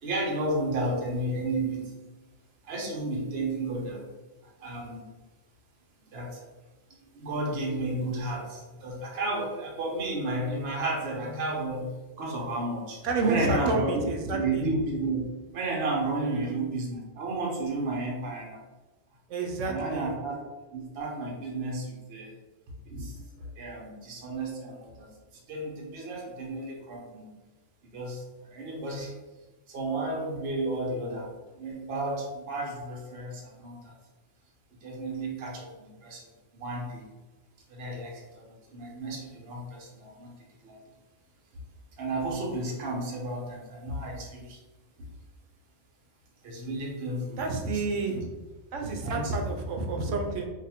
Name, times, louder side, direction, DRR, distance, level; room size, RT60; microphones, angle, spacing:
voice 1, 0.0-1.9 2.6-4.0 4.4-5.1 6.1-6.4 7.0-11.9 12.2-18.6 19.6-20.4 20.7-22.4 22.8-25.1 25.5-27.3 27.9-29.1 29.7-33.9 34.8-36.3 36.5-37.1 37.7-40.8 42.0-44.6 45.0-45.1 46.4-47.8 48.1-48.2 49.0-49.3, right 2 dB, 60° right, -2 dB, 1.0 m, -33 dB
voice 2, 13.0-14.6 16.3-16.6 19.3-20.1 47.4-48.2 48.7-50.5, right 3 dB, 75° right, 3 dB, 0.9 m, -29 dB
2.7 x 2.5 x 4.2 m, 1.2 s
omnidirectional pair, 1.3 m